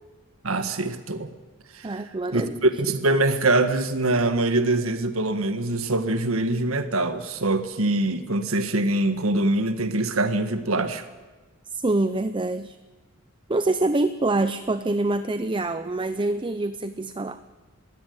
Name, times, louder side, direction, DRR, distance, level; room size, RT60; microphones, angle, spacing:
voice 1, 0.4-1.3 1.7-1.9 2.3-11.0, right 2 dB, 70° right, 9 dB, 1.7 m, -23 dB
voice 2, 1.8-2.6 11.7-12.8 13.5-17.4, right 2 dB, 25° right, 12 dB, 0.7 m, -25 dB
22.0 x 16.0 x 9.5 m, 1.3 s
head